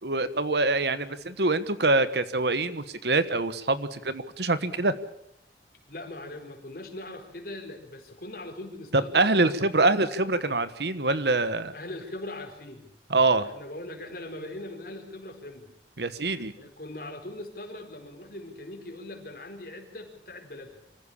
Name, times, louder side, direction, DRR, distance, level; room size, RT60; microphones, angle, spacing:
voice 1, 0.0-4.9 8.9-11.7 13.1-13.5 16.0-16.5, right 2 dB, 70° right, 13 dB, 1.3 m, -25 dB
voice 2, 5.9-9.3 11.7-12.9 13.3-15.7 16.3-20.8, left 1 dB, 55° left, 4 dB, 4.3 m, -41 dB
25.0 x 15.0 x 8.6 m, 0.76 s
head